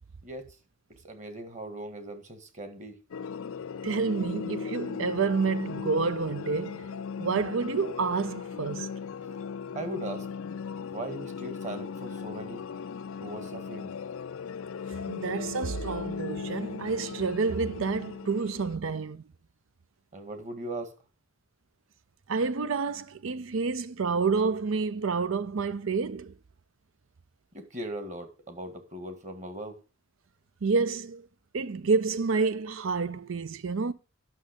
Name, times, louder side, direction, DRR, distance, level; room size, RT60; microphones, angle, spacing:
voice 1, 1.0-2.9 9.7-10.3 10.9-12.6 13.2-13.9 20.1-20.9 27.5-29.7, right 1 dB, 40° right, 1.8 m, -39 dB
sound 1, 3.1-18.8, left 6 dB, 90° left, 0.5 m, -38 dB
voice 2, 3.8-6.9 7.2-8.9 15.1-19.2 22.3-26.3 30.6-31.3 31.5-33.9, right 4 dB, 75° right, 0.6 m, -29 dB
11.0 x 6.4 x 5.1 m
head